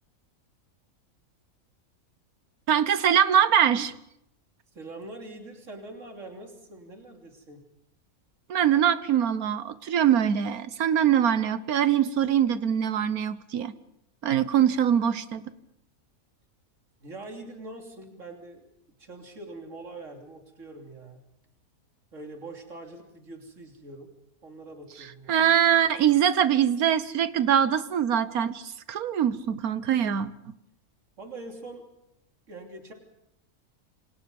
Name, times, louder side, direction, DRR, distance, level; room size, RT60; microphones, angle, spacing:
voice 1, 2.7-3.9 8.5-13.7 14.2-15.5 25.3-30.3, right 9 dB, 80° right, 14 dB, 1.5 m, -23 dB
voice 2, 4.7-7.7 17.0-18.6 19.0-21.2 22.1-24.1 24.4-25.5 31.2-31.8 32.5-32.9, right 2 dB, 55° right, 2 dB, 3.5 m, -43 dB
28.0 x 26.5 x 5.4 m, 0.81 s
omnidirectional pair, 1.5 m